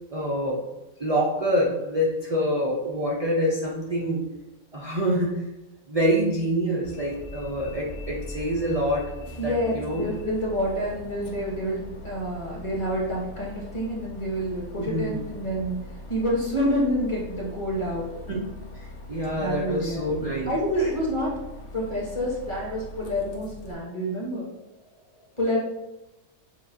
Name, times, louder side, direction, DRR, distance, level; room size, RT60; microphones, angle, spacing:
voice 1, 0.1-0.6 1.0-4.2 4.7-5.4 5.9-9.1 9.4-10.1 14.8-15.2 18.1-18.4 18.7-20.5, equal, 75° right, -4 dB, 0.3 m, -26 dB
Bus, 6.8-23.7, left 2 dB, 60° left, 1.0 m, -41 dB
voice 2, 9.4-15.7 16.1-18.1 19.4-20.0 20.5-21.3 21.7-24.5 25.4-25.6, equal, 25° left, -4 dB, 0.8 m, -28 dB
7.0 x 2.3 x 2.7 m, 0.98 s
omnidirectional pair, 1.6 m